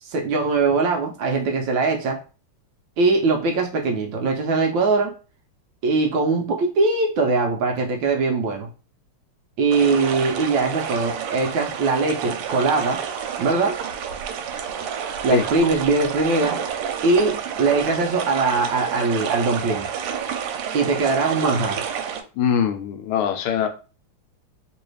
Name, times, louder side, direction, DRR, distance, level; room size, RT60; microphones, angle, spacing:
voice 1, 0.0-2.2 3.0-5.1 5.8-8.7 9.6-13.0 13.4-13.8 15.2-16.6 17.0-19.9 20.7-21.8, right 3 dB, 75° right, 1.2 m, -21 dB
sound 1, 9.7-22.2, right 7 dB, 90° right, 1.5 m, -29 dB
voice 2, 22.3-23.7, left 8 dB, 85° left, 1.5 m, -22 dB
3.2 x 3.1 x 3.1 m
omnidirectional pair, 2.4 m